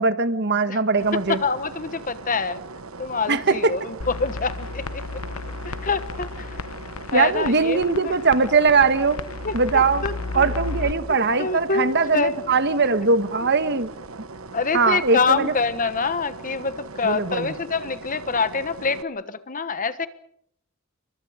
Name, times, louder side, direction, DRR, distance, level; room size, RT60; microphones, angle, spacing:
voice 1, 0.0-1.4 3.3-3.7 7.1-9.2 9.5-10.0 10.3-13.9 14.7-15.5 17.0-17.5, right 4 dB, 50° right, 12 dB, 1.4 m, -20 dB
sound 1, 1.0-19.0, right 3 dB, 65° right, 1.1 m, -40 dB
voice 2, 1.3-2.6 3.0-5.0 5.6-6.6 7.1-8.1 9.4-10.5 11.4-12.4 14.5-20.1, left 4 dB, 40° left, 13 dB, 1.3 m, -26 dB
sound 2, 4.0-10.9, left 4 dB, 85° left, 1.0 m, -34 dB
29.5 x 24.0 x 5.1 m, 0.69 s
head